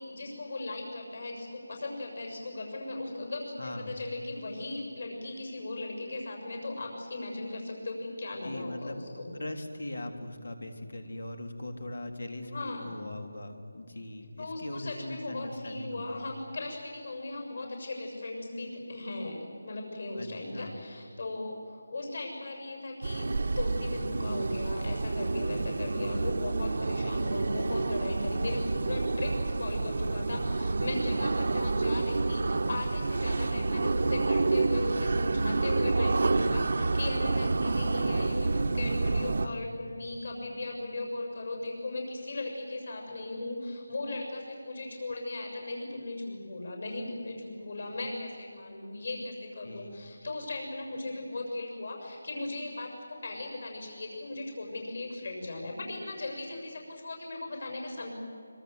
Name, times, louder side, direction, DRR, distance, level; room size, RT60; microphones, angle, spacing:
voice 1, 0.0-9.3 12.4-13.0 14.4-58.1, left 2 dB, 55° left, 1 dB, 6.9 m, -38 dB
voice 2, 3.6-4.0 8.4-9.0 9.3-16.2 20.2-20.3 20.5-20.8 39.4-39.7 49.6-50.0, left 1 dB, 90° left, 6 dB, 3.6 m, -40 dB
sound 1, 23.0-39.5, right 3 dB, 55° right, 0.9 m, -29 dB
25.5 x 24.0 x 8.1 m, 2.5 s
figure-of-eight pair, 175°, 0 cm